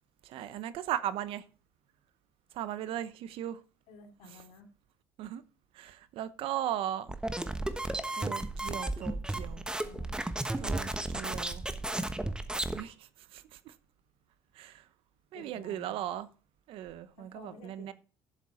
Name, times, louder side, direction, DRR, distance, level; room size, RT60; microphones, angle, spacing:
voice 1, 0.2-1.4 2.5-3.6 5.2-5.4 5.7-7.2 8.1-9.7 10.6-11.6 12.7-13.7 14.5-14.9 15.3-16.3 16.7-17.9, right 11 dB, 70° right, 0.9 m, -37 dB
voice 2, 3.9-4.7 9.8-10.2 11.3-11.5 15.3-16.0 17.2-17.9, left 5 dB, 75° left, 2.9 m, -53 dB
sound 1, 7.1-12.8, right 2 dB, 10° right, 1.2 m, -34 dB
11.0 x 7.4 x 4.3 m
supercardioid pair, 85°, 10 cm